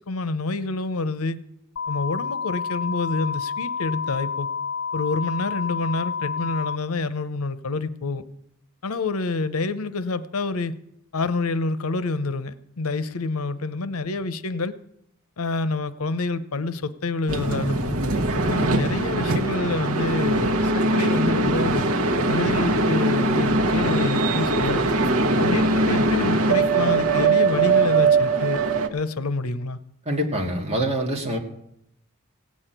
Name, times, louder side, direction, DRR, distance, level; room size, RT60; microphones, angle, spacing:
voice 1, 0.1-1.4 1.9-4.5 4.9-8.2 8.8-10.7 11.1-14.7 15.4-18.0 18.5-21.8 22.3-24.8 25.4-28.6 28.9-29.8, left 3 dB, 85° left, 14 dB, 0.8 m, -27 dB
sound 1, 1.8-6.8, left 6 dB, 55° left, 0.5 m, -29 dB
sound 2, 17.3-28.9, right 3 dB, 80° right, 1.1 m, -21 dB
voice 2, 30.1-31.4, right 1 dB, 30° right, 2 dB, 2.1 m, -25 dB
17.0 x 6.4 x 9.0 m, 0.78 s
head